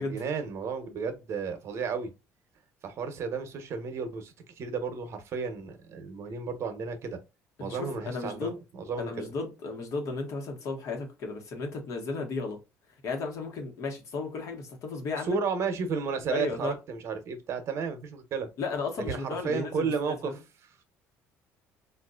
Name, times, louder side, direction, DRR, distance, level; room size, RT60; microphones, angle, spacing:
voice 1, 0.0-2.1 2.8-7.2 7.6-9.3 15.2-18.5 19.1-20.4, right 5 dB, 50° right, 0.9 m, -33 dB
voice 2, 7.6-8.6 9.0-12.6 13.0-15.4 16.3-16.7 18.6-20.4, left 4 dB, 60° left, 1.2 m, -34 dB
4.0 x 2.5 x 2.3 m
cardioid pair, 125°, 6 cm